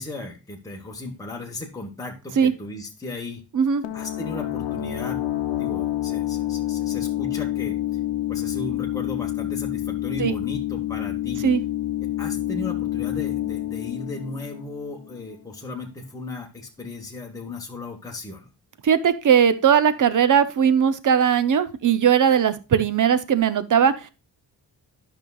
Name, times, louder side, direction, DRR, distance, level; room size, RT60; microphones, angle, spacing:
voice 1, 0.0-3.4 3.9-5.2 5.6-7.8 8.3-11.4 12.2-18.5, left 2 dB, 10° left, -1 dB, 1.2 m, -36 dB
sound 1, 3.8-15.3, left 13 dB, 80° left, 0.8 m, -28 dB
voice 2, 18.8-24.1, right 8 dB, 45° right, 13 dB, 0.7 m, -19 dB
12.0 x 5.7 x 2.3 m, 0.29 s
wide cardioid pair, 150°, 42 cm